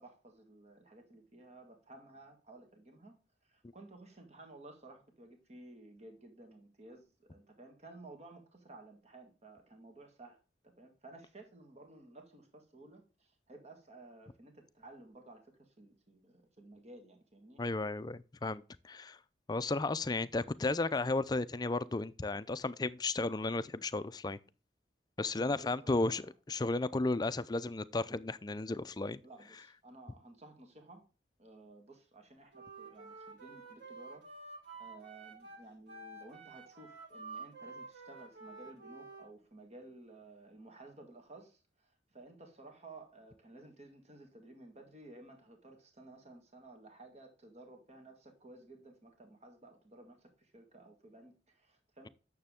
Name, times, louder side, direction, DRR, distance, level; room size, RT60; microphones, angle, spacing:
voice 1, 0.0-3.1 3.4-10.4 10.6-17.6 25.4-26.3 29.2-31.0 31.4-34.2 34.8-52.1, right 2 dB, 40° right, 1.8 m, -55 dB
voice 2, 17.6-19.2 19.5-24.4 25.2-29.2, left 2 dB, 25° left, 0.5 m, -34 dB
Wind instrument woodwind instrument, 32.5-39.3, right 3 dB, 90° right, 5.4 m, -50 dB
9.2 x 6.9 x 3.5 m
head